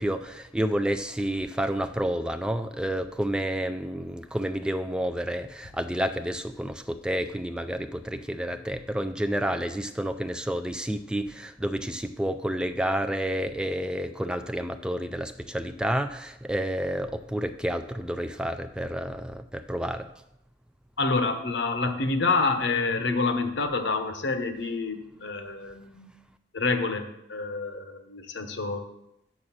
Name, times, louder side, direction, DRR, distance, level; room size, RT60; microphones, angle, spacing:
voice 1, 0.0-20.1, equal, 5° right, 9 dB, 0.3 m, -30 dB
voice 2, 21.0-26.1 26.5-28.8, left 3 dB, 80° left, 7 dB, 1.0 m, -28 dB
6.4 x 6.1 x 7.3 m, 0.85 s
head